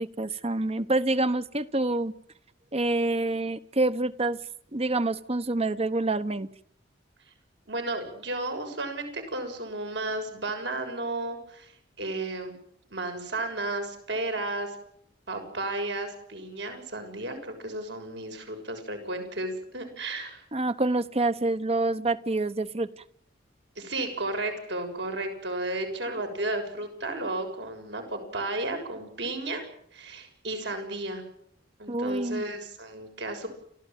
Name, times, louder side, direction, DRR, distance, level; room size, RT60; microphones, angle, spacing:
voice 1, 0.0-2.1 2.7-4.4 4.7-6.5 20.5-22.9 31.9-32.4, right 2 dB, 35° right, 14 dB, 1.0 m, -27 dB
voice 2, 7.7-11.7 12.0-12.5 12.9-14.8 15.3-20.4 23.8-29.6 29.9-31.2 31.8-33.5, right 2 dB, 65° right, 5 dB, 6.9 m, -33 dB
29.5 x 14.5 x 9.3 m, 0.68 s
head